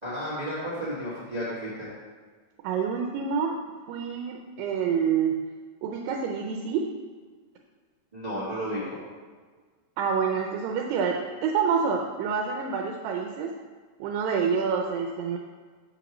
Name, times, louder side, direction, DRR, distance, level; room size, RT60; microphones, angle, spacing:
voice 1, 0.0-1.9 8.1-9.0, equal, 50° right, -9 dB, 0.4 m, -32 dB
voice 2, 2.6-3.6 3.9-5.4 5.8-6.9 10.0-13.5 14.0-15.4, right 6 dB, 85° right, 1 dB, 2.3 m, -27 dB
7.3 x 3.0 x 5.9 m, 1.5 s
omnidirectional pair, 3.9 m